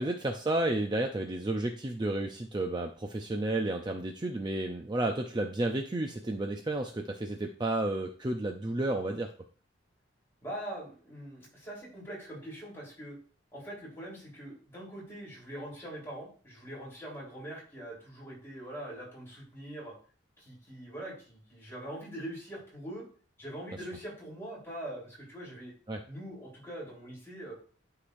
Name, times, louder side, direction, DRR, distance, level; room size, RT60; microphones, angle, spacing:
voice 1, 0.0-9.3 25.9-26.0, right 2 dB, 20° right, 3 dB, 0.5 m, -32 dB
voice 2, 10.4-13.2 13.5-19.9 20.4-23.0 23.4-25.7 26.1-27.5, right 1 dB, 15° left, -6 dB, 3.7 m, -43 dB
11.5 x 4.9 x 2.6 m, 0.43 s
head